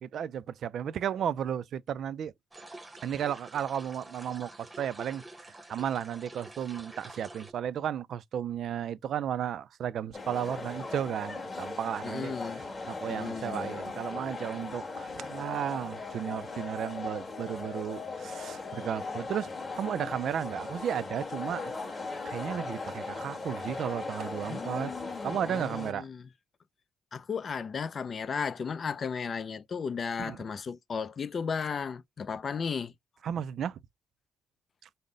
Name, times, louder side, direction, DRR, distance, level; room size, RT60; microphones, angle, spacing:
voice 1, 0.0-2.3 3.0-12.4 12.9-19.5 19.8-22.0 22.2-24.9 25.2-26.1 30.2-30.4 33.2-33.8 34.8-34.9, right 9 dB, 65° right, 0.3 m, -34 dB
sound 1, 2.5-7.5, right 2 dB, 20° right, 0.9 m, -48 dB
sound 2, 10.1-25.9, left 3 dB, 20° left, 1.6 m, -39 dB
voice 2, 12.0-12.6 13.1-13.7 24.5-26.2 27.1-32.9, left 6 dB, 45° left, 0.5 m, -35 dB
sound 3, 15.3-20.4, left 12 dB, 75° left, 0.8 m, -48 dB
5.3 x 2.1 x 3.8 m
cardioid pair, 90°, 0 cm